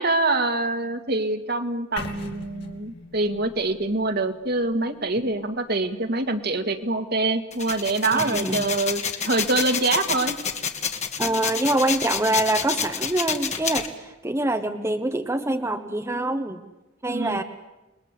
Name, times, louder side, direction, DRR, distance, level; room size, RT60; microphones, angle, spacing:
voice 1, 0.0-10.4 17.1-17.4, right 2 dB, 55° right, 6 dB, 2.1 m, -25 dB
sound 1, 2.0-5.9, left 2 dB, 60° left, 3.1 m, -41 dB
sound 2, 7.5-13.9, left 7 dB, 35° left, 2.1 m, -28 dB
voice 2, 8.1-8.6 11.2-16.6 17.0-17.4, right 1 dB, 15° right, 6 dB, 1.2 m, -25 dB
28.5 x 21.5 x 8.4 m, 1.0 s
head